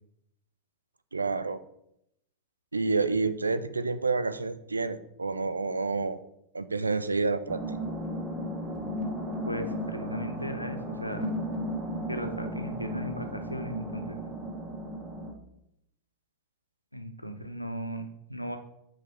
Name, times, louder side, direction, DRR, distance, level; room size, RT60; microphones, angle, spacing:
voice 1, 1.1-1.6 2.7-6.2 6.5-7.6, right 4 dB, 80° right, 12 dB, 0.4 m, -29 dB
sound 1, 7.5-15.3, equal, 25° right, 1.2 m, -35 dB
voice 2, 9.5-11.4 12.1-14.2 16.9-18.6, equal, 90° left, 7 dB, 0.6 m, -37 dB
6.0 x 4.8 x 4.5 m, 0.78 s
figure-of-eight pair, 90°, 0 cm